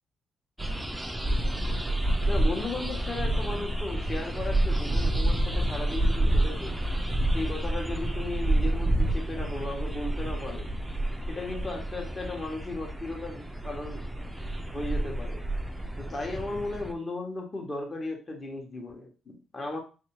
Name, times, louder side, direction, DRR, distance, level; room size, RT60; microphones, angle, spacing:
sound 1, 0.6-16.9, right 1 dB, 10° right, 0.4 m, -29 dB
voice 1, 2.3-6.8 7.3-10.7 11.3-14.0 14.7-15.4 16.0-19.8, left 2 dB, 30° left, 1 dB, 1.0 m, -36 dB
3.4 x 2.6 x 3.0 m, 0.34 s
cardioid pair, 120°, 0 cm